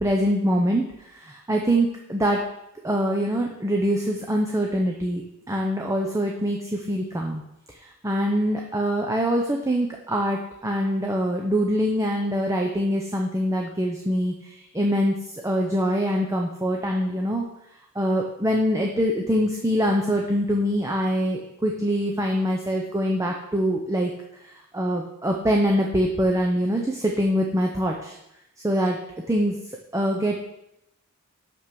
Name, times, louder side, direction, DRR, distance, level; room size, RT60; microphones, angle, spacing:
voice 1, 0.0-0.8 1.2-2.4 2.8-5.2 5.5-7.4 8.0-15.2 15.4-17.5 18.0-24.1 24.7-28.2 28.6-29.0 29.3-29.6 29.9-30.4, equal, 15° right, 1 dB, 0.7 m, -24 dB
6.1 x 6.1 x 6.8 m, 0.85 s
head